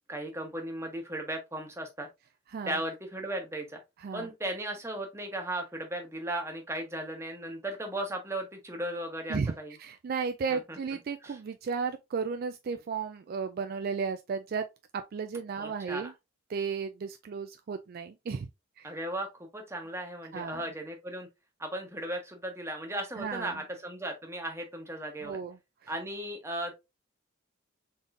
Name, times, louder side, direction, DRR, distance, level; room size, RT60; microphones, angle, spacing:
voice 1, 0.1-2.1 2.7-3.8 4.1-9.7 10.5-10.8 11.2-11.4 15.6-16.1 18.8-21.3 21.6-25.4 25.9-26.7, right 1 dB, 15° right, 1.0 m, -36 dB
voice 2, 9.8-14.7 14.9-16.1 16.5-18.5 18.8-18.9 20.3-20.6 23.2-23.6 25.2-25.9, right 5 dB, 50° right, 0.3 m, -34 dB
4.0 x 3.6 x 2.5 m
head